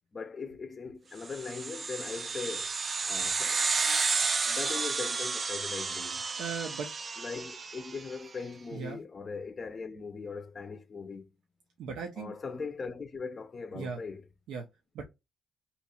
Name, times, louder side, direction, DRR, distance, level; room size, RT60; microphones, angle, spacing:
voice 1, 0.1-2.7 3.1-3.6 4.4-6.2 7.2-11.3 12.2-14.3, left 4 dB, 35° left, 0.5 m, -40 dB
sound 1, 1.3-8.1, right 4 dB, 35° right, 0.3 m, -32 dB
voice 2, 6.4-6.9 8.7-9.0 11.8-12.3 13.7-14.0 14.5-14.6 14.9-15.0, right 5 dB, 85° right, 0.6 m, -37 dB
2.8 x 2.3 x 4.2 m
cardioid pair, 115°, 0 cm